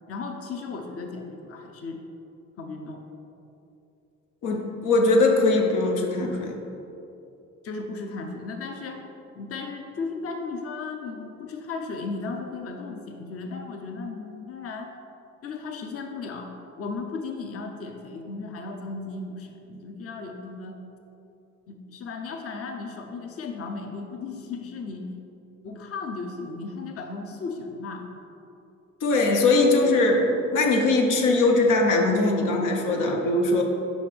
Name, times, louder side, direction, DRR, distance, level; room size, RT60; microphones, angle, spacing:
voice 1, 0.1-2.0 2.6-3.0 7.6-9.0 9.4-14.9 15.4-20.8 21.7-25.1 25.6-28.1, left 4 dB, 50° left, 3 dB, 0.7 m, -35 dB
voice 2, 4.4-6.6 29.0-33.6, left 2 dB, 85° left, 1 dB, 0.8 m, -21 dB
5.2 x 5.0 x 5.1 m, 2.8 s
cardioid pair, 90°, 30 cm